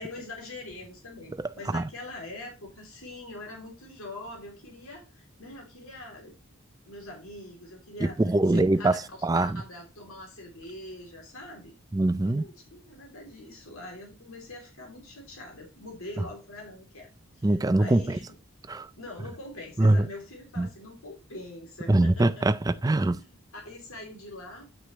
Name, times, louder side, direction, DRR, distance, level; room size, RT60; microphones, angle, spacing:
voice 1, 0.0-6.3 6.8-8.2 8.5-9.0 9.3-11.7 12.2-17.1 17.4-18.2 19.0-22.5 22.8-24.7, left 2 dB, 75° left, 3.1 m, -43 dB
voice 2, 8.2-9.6 11.9-12.5 17.4-18.2 18.7-18.9 19.8-20.1 20.6-20.7 21.9-23.2, right 2 dB, 15° right, 0.4 m, -23 dB
9.7 x 6.3 x 3.1 m
head